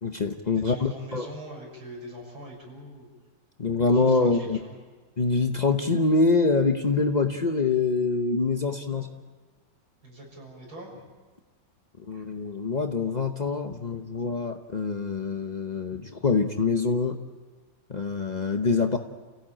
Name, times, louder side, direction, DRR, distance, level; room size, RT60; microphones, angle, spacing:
voice 1, 0.0-1.3 3.6-4.6 5.2-9.1 12.0-17.2 17.9-19.0, left 3 dB, 70° left, 5 dB, 0.4 m, -25 dB
voice 2, 0.6-3.1 3.9-4.8 8.9-9.1 10.0-11.0 12.1-12.2, right 1 dB, 65° right, -1 dB, 7.5 m, -43 dB
30.0 x 16.5 x 9.0 m, 1.4 s
omnidirectional pair, 2.4 m